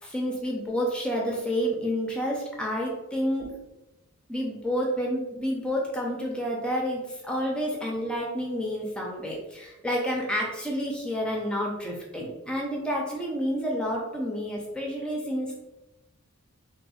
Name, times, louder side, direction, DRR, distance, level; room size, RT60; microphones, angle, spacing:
voice 1, 0.0-3.6 4.3-15.5, equal, 5° left, -2 dB, 0.5 m, -29 dB
3.6 x 2.1 x 2.4 m, 1.0 s
head